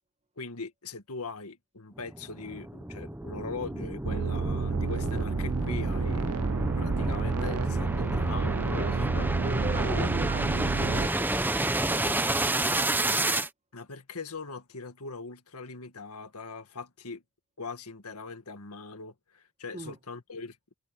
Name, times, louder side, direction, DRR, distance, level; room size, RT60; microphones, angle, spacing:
voice 1, 0.4-9.3 9.9-10.1 13.7-17.2 17.6-20.6, left 4 dB, 85° left, 1.8 m, -40 dB
sound 1, 2.0-13.5, right 1 dB, 10° right, 0.7 m, -30 dB
sound 2, 4.0-11.1, right 5 dB, 80° right, 0.5 m, -30 dB
voice 2, 9.4-12.7 19.7-20.0, right 2 dB, 30° right, 1.3 m, -39 dB
head